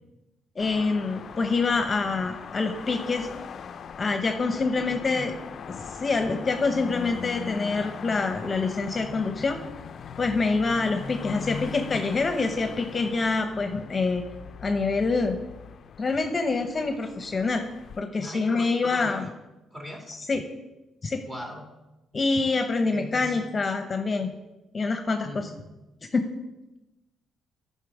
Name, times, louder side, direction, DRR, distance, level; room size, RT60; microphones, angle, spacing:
sound 1, 0.6-18.0, left 6 dB, 55° left, 0.4 m, -40 dB
voice 1, 0.6-3.3 4.0-5.3 5.7-9.6 10.2-14.2 14.6-15.4 16.0-17.6 18.0-19.3 20.1-20.4 21.0-21.2 22.1-24.3 24.7-25.5 26.1-26.3, left 3 dB, 35° left, 6 dB, 0.8 m, -26 dB
voice 2, 4.8-5.3 18.2-19.2 19.7-20.1 21.3-21.6 22.9-23.4 25.2-25.6, left 1 dB, 20° right, 0 dB, 2.5 m, -40 dB
11.0 x 5.7 x 4.9 m, 1.0 s
cardioid pair, 90°, 0 cm